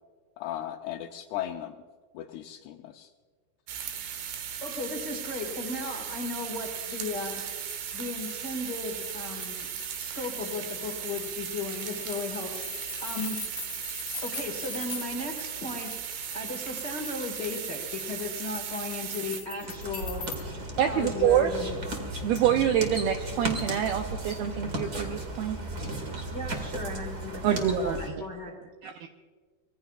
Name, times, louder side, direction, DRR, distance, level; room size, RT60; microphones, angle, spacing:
voice 1, 0.4-1.8 2.1-3.1, left 12 dB, 80° left, 4 dB, 2.3 m, -36 dB
sound 1, 3.7-19.4, right 9 dB, 70° right, 3.3 m, -37 dB
voice 2, 4.6-7.4 7.9-9.7 10.0-13.4 14.2-20.2 20.8-21.8 26.3-28.5, left 3 dB, 60° left, 1 dB, 1.1 m, -36 dB
sound 2, 7.1-20.4, left 4 dB, 25° left, 1.6 m, -43 dB
sound 3, 19.5-28.1, right 1 dB, 50° right, 1.1 m, -35 dB
voice 3, 20.8-21.5 22.2-25.6 27.4-28.0 28.8-29.1, right 10 dB, 85° right, 6 dB, 2.1 m, -26 dB
24.5 x 20.5 x 2.4 m, 1.5 s
omnidirectional pair, 5.2 m